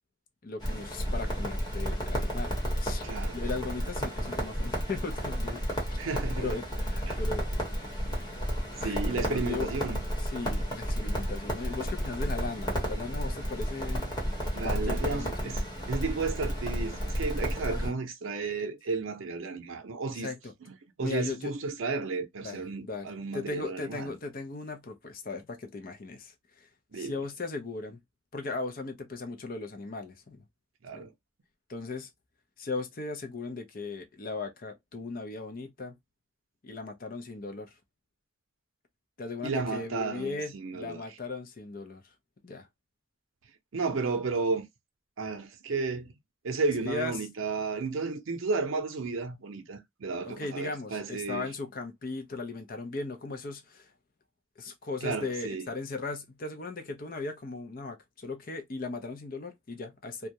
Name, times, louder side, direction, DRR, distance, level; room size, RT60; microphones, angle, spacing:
voice 1, 0.4-3.1 3.3-5.6 5.9-6.0 6.4-7.5 8.8-9.7 10.1-14.1 14.6-15.5 17.6-17.9 20.1-20.5 21.0-21.5 22.4-23.1 23.3-28.0 28.3-30.4 30.9-31.1 31.7-32.1 32.6-36.0 36.6-37.7 39.2-42.1 42.4-42.7 46.8-47.3 50.2-53.9 54.6-60.3, left 3 dB, 45° left, 0.5 m, -37 dB
Crackle, 0.6-17.9, equal, 20° left, 0.9 m, -32 dB
voice 2, 3.0-3.4 6.0-6.6 7.1-7.2 8.8-10.0 14.5-15.6 15.9-20.3 21.0-24.1 26.9-27.1 30.8-31.1 39.4-41.0 43.7-44.7 45.2-46.1 46.4-51.5 55.0-55.7, right 4 dB, 85° right, 0.6 m, -33 dB
2.3 x 2.1 x 2.7 m
head